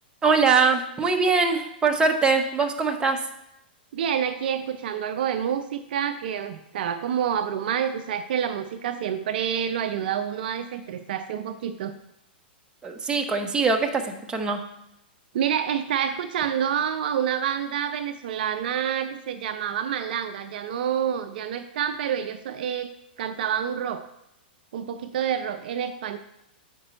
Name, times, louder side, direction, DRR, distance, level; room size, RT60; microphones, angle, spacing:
voice 1, 0.2-3.2 12.8-14.0 14.3-14.6, right 4 dB, 15° right, 2 dB, 1.0 m, -22 dB
voice 2, 3.9-11.9 15.3-22.9 23.2-24.0 24.7-26.2, right 8 dB, 65° right, 9 dB, 0.5 m, -28 dB
8.4 x 5.2 x 4.4 m, 0.81 s
hypercardioid pair, 120°, 6 cm